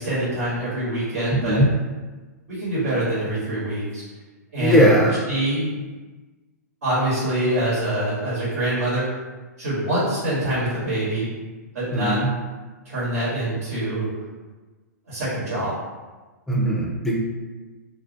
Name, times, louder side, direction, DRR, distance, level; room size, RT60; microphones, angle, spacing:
voice 1, 0.0-1.6 2.5-4.0 4.5-5.8 6.8-9.1 9.6-11.3 11.7-12.2 12.8-14.1 15.1-15.7, right 1 dB, 70° right, -9 dB, 1.2 m, -25 dB
voice 2, 1.3-1.7 4.6-5.2 11.9-12.3 16.5-17.2, equal, 5° left, -3 dB, 0.4 m, -19 dB
2.3 x 2.1 x 2.5 m, 1.3 s
hypercardioid pair, 125°, 9 cm